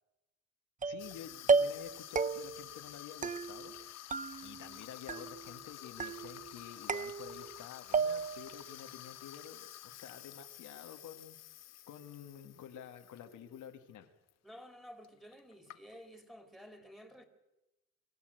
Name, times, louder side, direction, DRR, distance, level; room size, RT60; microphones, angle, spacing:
voice 1, 0.8-3.9 4.4-11.4 11.9-14.1, left 8 dB, 80° left, 5 dB, 1.9 m, -50 dB
sound 1, 0.8-1.1 1.5-1.9 2.2-2.7 3.2-3.8 4.1-4.8 5.1-5.6 6.0-6.5 6.9-7.6 7.9-8.5, right 4 dB, 25° right, 0.6 m, -33 dB
Water tap faucet / Sink (filling or washing), 1.0-13.7 14.0-14.3 15.0-15.1 15.3-16.2, left 13 dB, 60° left, 0.6 m, -51 dB
voice 2, 14.4-17.2, equal, ahead, 6 dB, 3.0 m, -52 dB
24.0 x 14.5 x 7.9 m, 1.0 s
cardioid pair, 90°, 30 cm